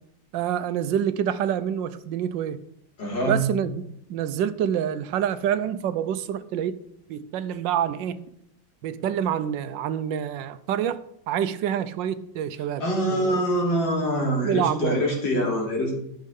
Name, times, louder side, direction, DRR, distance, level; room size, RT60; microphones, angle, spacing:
voice 1, 0.3-2.6 3.2-3.8 4.1-6.8 7.1-8.2 8.8-11.0 11.3-12.8 13.1-13.4 14.4-15.0, right 9 dB, 80° right, 1.3 m, -27 dB
voice 2, 3.0-3.4 12.8-15.9, equal, 85° left, 3.6 m, -24 dB
11.5 x 6.5 x 5.3 m
omnidirectional pair, 2.0 m